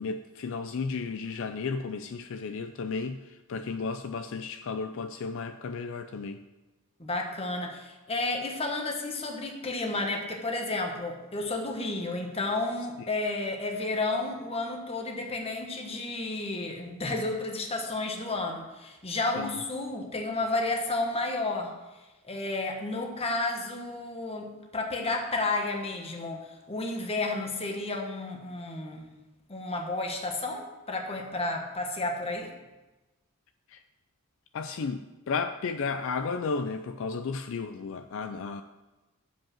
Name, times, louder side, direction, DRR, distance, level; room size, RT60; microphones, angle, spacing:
voice 1, 0.0-6.4 13.0-13.1 19.4-19.6 33.7-33.8 34.5-38.6, left 4 dB, 65° left, 8 dB, 0.4 m, -33 dB
voice 2, 7.0-21.7 22.2-29.0 29.5-32.5, left 2 dB, 30° left, 2 dB, 1.2 m, -32 dB
7.3 x 5.2 x 7.3 m, 1.1 s
head